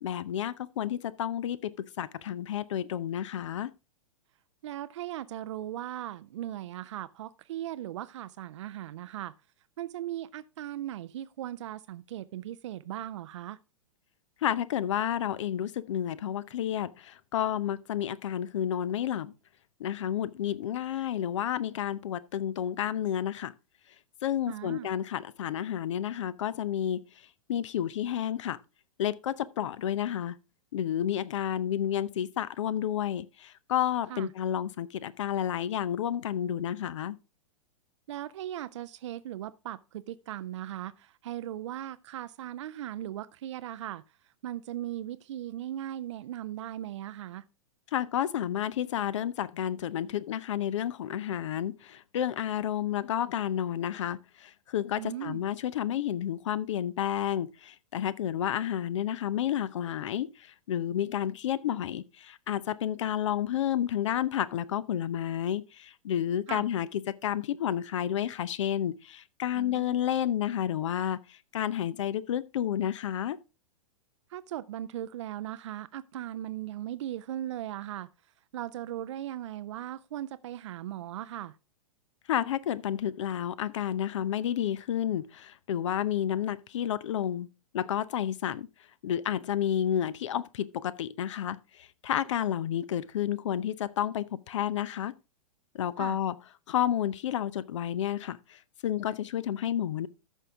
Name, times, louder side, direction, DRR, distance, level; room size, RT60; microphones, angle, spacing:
voice 1, 0.0-1.7 2.0-3.7 14.4-19.3 19.8-23.5 24.2-27.0 27.5-28.6 29.0-30.4 30.7-37.2 47.9-73.4 82.3-87.5 87.7-88.7 89.0-95.1 95.7-96.4 96.7-100.1, left 10 dB, 60° left, 0.6 m, -31 dB
voice 2, 4.6-9.3 9.8-13.6 24.5-24.9 34.1-34.3 38.1-44.0 44.4-47.5 55.0-55.4 66.5-66.6 69.5-70.0 74.3-78.1 78.5-81.5 96.0-96.2, right 12 dB, 55° right, 0.5 m, -38 dB
13.5 x 5.5 x 3.5 m
figure-of-eight pair, 105°, 18 cm